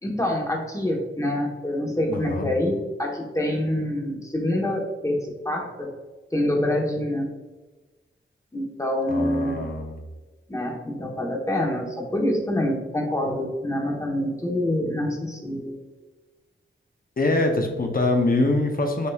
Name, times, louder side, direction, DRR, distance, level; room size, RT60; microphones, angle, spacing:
voice 1, 0.0-5.2 5.4-5.9 6.3-7.3 8.5-9.7 10.5-15.8, left 1 dB, 15° left, 0 dB, 1.1 m, -26 dB
voice 2, 2.1-2.5 9.1-10.0 17.2-19.1, left 2 dB, 45° left, 4 dB, 0.7 m, -24 dB
6.5 x 2.8 x 2.3 m, 1.2 s
cardioid pair, 55°, 21 cm